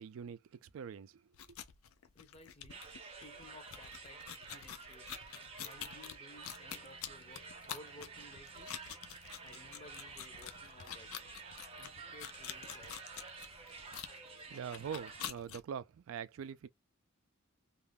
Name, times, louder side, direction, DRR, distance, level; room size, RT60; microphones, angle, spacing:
voice 1, 0.0-1.3 14.5-16.7, right 7 dB, 75° right, 0.3 m, -44 dB
sound 1, 1.3-15.6, left 10 dB, 80° left, 0.4 m, -48 dB
voice 2, 2.1-2.8 3.2-5.2 5.6-8.7 9.4-11.1 11.8-13.2, left 1 dB, 30° left, 0.6 m, -57 dB
sound 2, 2.7-15.3, right 4 dB, 30° right, 0.6 m, -51 dB
sound 3, 6.4-14.6, left 3 dB, 50° left, 1.2 m, -69 dB
2.4 x 2.1 x 3.3 m
head